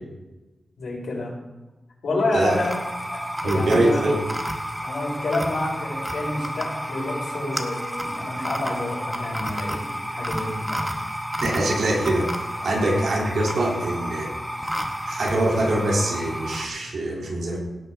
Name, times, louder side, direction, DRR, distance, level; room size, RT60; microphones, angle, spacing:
voice 1, 0.8-1.4 2.0-2.8 3.1-4.0 4.8-9.8 10.1-10.8 12.6-12.7, left 2 dB, 85° left, -3 dB, 5.1 m, -29 dB
sound 1, 2.5-16.7, equal, 5° right, 1.2 m, -31 dB
voice 2, 3.4-4.2 11.4-14.3 15.1-17.6, right 1 dB, 90° right, -3 dB, 3.5 m, -23 dB
16.5 x 8.8 x 3.9 m, 1.1 s
wide cardioid pair, 95°, 0 cm